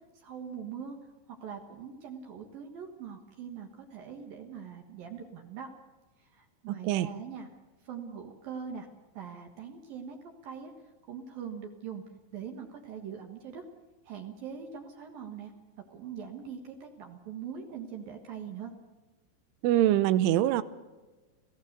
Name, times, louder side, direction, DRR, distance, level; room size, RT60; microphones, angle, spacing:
voice 1, 0.1-1.0 1.3-5.7 6.2-7.5 7.8-8.9 9.1-10.2 10.4-10.7 11.1-12.0 12.3-13.6 14.0-15.5 15.9-18.7, right 7 dB, 60° right, 4 dB, 2.8 m, -42 dB
voice 2, 19.6-20.6, right 13 dB, 90° right, 15 dB, 3.3 m, -24 dB
26.5 x 16.5 x 6.8 m, 1.2 s
omnidirectional pair, 5.4 m